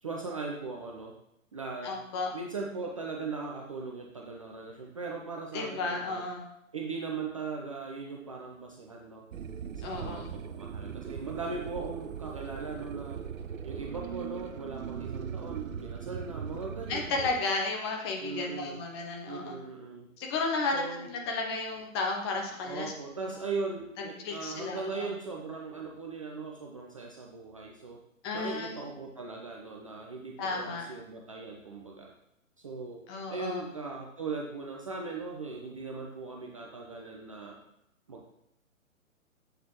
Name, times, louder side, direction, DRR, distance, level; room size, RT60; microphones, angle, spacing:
voice 1, 0.0-1.1 1.5-2.0 2.3-6.2 6.7-9.2 9.8-13.2 13.6-17.3 18.2-18.8 19.3-20.1 20.7-21.1 22.6-28.0 28.3-32.1 32.6-33.0 33.3-37.6 38.1-38.3, right 4 dB, 25° right, -1 dB, 0.4 m, -39 dB
voice 2, 1.8-2.3 5.5-6.4 9.8-10.4 16.9-19.6 20.2-22.9 23.3-23.4 24.2-25.1 28.2-28.8 30.4-30.9 33.1-33.6, left 3 dB, 20° left, 1 dB, 0.7 m, -33 dB
sound 1, 9.3-17.4, right 8 dB, 70° right, 0.7 m, -39 dB
7.9 x 6.5 x 2.9 m, 0.80 s
figure-of-eight pair, 130°, 41 cm